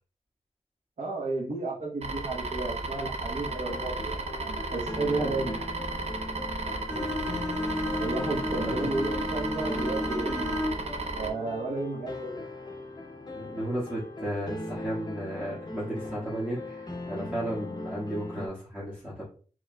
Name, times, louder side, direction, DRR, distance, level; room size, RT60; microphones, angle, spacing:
voice 1, 1.0-5.6 8.0-10.7 11.2-12.4, right 3 dB, 85° right, -5 dB, 0.9 m, -33 dB
sound 1, 2.0-11.3, right 3 dB, 60° right, 0.5 m, -34 dB
sound 2, 3.5-18.5, left 2 dB, 35° left, 0.6 m, -39 dB
Bowed string instrument, 6.9-11.0, left 1 dB, 5° left, 1.8 m, -33 dB
voice 2, 6.9-7.4 8.6-8.9 13.3-19.2, right 1 dB, 10° right, -10 dB, 1.6 m, -34 dB
4.7 x 3.0 x 2.3 m, 0.40 s
wide cardioid pair, 105°, 13 cm